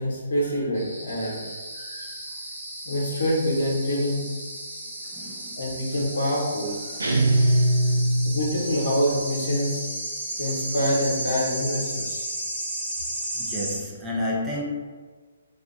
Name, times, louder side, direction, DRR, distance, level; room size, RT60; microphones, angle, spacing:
voice 1, 0.0-2.1 2.8-4.2 5.6-6.8 8.2-9.8 10.4-12.2, equal, 70° left, -3 dB, 0.9 m, -26 dB
sound 1, 0.7-13.8, right 1 dB, 60° right, 1.1 m, -34 dB
voice 2, 5.1-5.6 6.9-7.0 7.8-8.0 13.3-14.6, left 1 dB, 15° right, -4 dB, 0.6 m, -31 dB
sound 2, 7.0-8.7, right 1 dB, 85° right, 0.5 m, -21 dB
2.6 x 2.2 x 3.8 m, 1.5 s
figure-of-eight pair, 135°, 0 cm